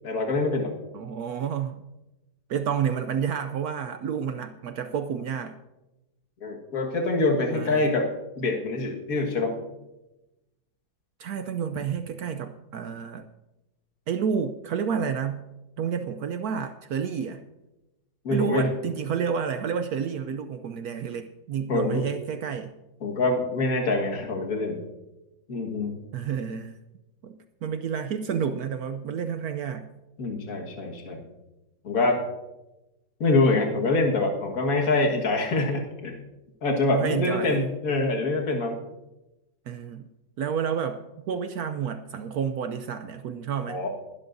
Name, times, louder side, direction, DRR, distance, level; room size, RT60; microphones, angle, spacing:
voice 1, 0.0-0.7 6.4-8.1 8.4-9.6 18.2-18.7 21.7-22.0 23.0-24.8 25.5-25.9 30.2-31.3 31.8-32.2 33.2-36.2 36.6-38.8 43.7-43.9, left 2 dB, 50° left, 1 dB, 2.0 m, -25 dB
voice 2, 0.9-1.8 2.5-5.5 7.5-7.9 11.2-13.3 14.1-15.4 15.8-17.4 18.3-22.7 26.1-26.8 27.2-29.9 36.9-37.6 39.7-40.0 40.4-41.0 41.3-43.8, right 7 dB, 70° right, 9 dB, 0.9 m, -30 dB
20.0 x 12.0 x 2.6 m, 0.99 s
omnidirectional pair, 2.1 m